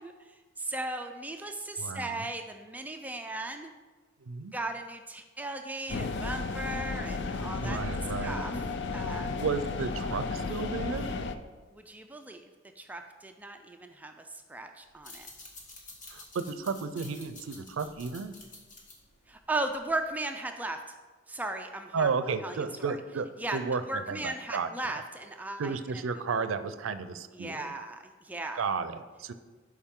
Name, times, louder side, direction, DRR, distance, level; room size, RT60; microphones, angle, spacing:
voice 1, 0.0-3.7 4.5-7.8 8.2-8.5 8.9-9.4 11.7-12.5 12.8-14.1 14.5-15.3 19.3-20.8 21.3-23.0 23.4-23.6 23.9-25.8 27.4-28.6, right 2 dB, 10° right, 5 dB, 0.4 m, -37 dB
voice 2, 1.8-2.3 4.2-4.5 7.6-8.5 9.2-11.1 16.1-18.3 21.9-23.3 23.5-25.0 25.6-27.7 28.5-29.3, right 5 dB, 85° right, 11 dB, 0.5 m, -33 dB
sound 1, 5.9-11.3, left 3 dB, 60° left, 0.5 m, -33 dB
sound 2, 14.9-20.1, left 2 dB, 40° left, 1.4 m, -50 dB
11.5 x 4.8 x 3.7 m, 1.3 s
head